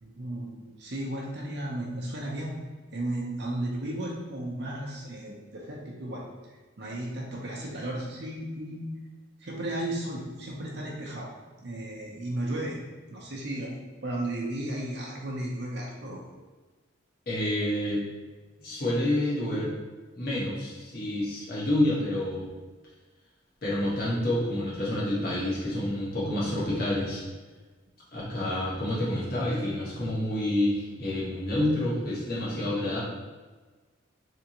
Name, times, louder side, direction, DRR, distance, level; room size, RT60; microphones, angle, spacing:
voice 1, 0.0-2.5 2.9-6.3 6.8-8.9 9.4-11.3 11.6-12.8 13.1-13.7 14.0-16.2 28.2-28.3, right 1 dB, 55° right, -2 dB, 0.7 m, -34 dB
voice 2, 17.3-18.0 18.6-19.7 20.1-22.5 23.6-27.2 28.1-33.0, left 1 dB, 50° left, -6 dB, 1.2 m, -28 dB
3.7 x 3.4 x 2.9 m, 1.3 s
head